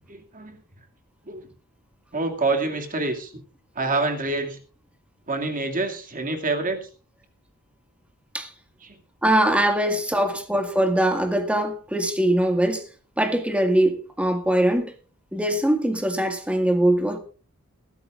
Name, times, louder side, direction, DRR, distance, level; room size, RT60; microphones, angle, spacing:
voice 1, 0.1-0.6 1.3-1.5 2.1-3.3 3.8-4.6 5.3-6.9 8.8-8.9, right 3 dB, 40° right, 2.3 m, -26 dB
voice 2, 9.2-12.8 13.2-14.9 15.3-17.2, right 1 dB, 5° right, 1.8 m, -22 dB
21.0 x 13.0 x 2.5 m
head